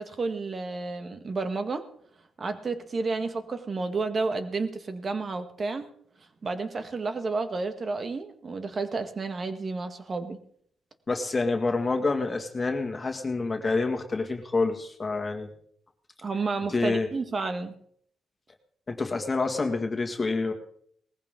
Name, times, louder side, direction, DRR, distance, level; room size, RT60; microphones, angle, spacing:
voice 1, 0.0-1.8 2.4-5.9 6.4-10.4 16.2-17.7, right 3 dB, 40° right, 8 dB, 1.7 m, -31 dB
voice 2, 11.1-15.5 16.7-17.1 18.9-20.5, left 3 dB, 25° left, 4 dB, 2.1 m, -27 dB
19.5 x 15.0 x 3.8 m, 0.64 s
cardioid pair, 95°, 0 cm